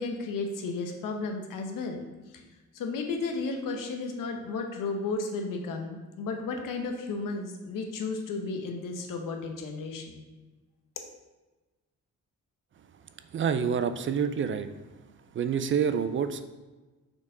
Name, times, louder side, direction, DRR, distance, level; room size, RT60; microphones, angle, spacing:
voice 1, 0.0-2.0 2.3-2.4 2.7-10.2 11.0-11.1, left 3 dB, 90° left, 3 dB, 1.0 m, -33 dB
voice 2, 13.3-14.7 15.3-16.4, right 7 dB, 40° right, 10 dB, 0.4 m, -27 dB
5.9 x 4.4 x 3.9 m, 1.2 s
cardioid pair, 120°, 32 cm